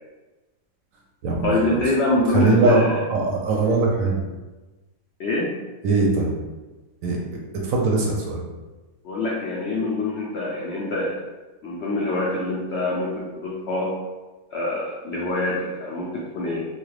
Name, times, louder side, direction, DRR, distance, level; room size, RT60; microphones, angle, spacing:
voice 1, 1.4-3.0 5.2-5.5 9.0-11.2 11.6-13.9 14.5-16.6, left 2 dB, 75° left, -4 dB, 0.6 m, -25 dB
voice 2, 2.3-4.2 5.8-6.4 7.0-7.2 7.6-8.4, right 3 dB, 70° right, -1 dB, 0.9 m, -20 dB
3.0 x 2.2 x 3.1 m, 1.2 s
omnidirectional pair, 1.6 m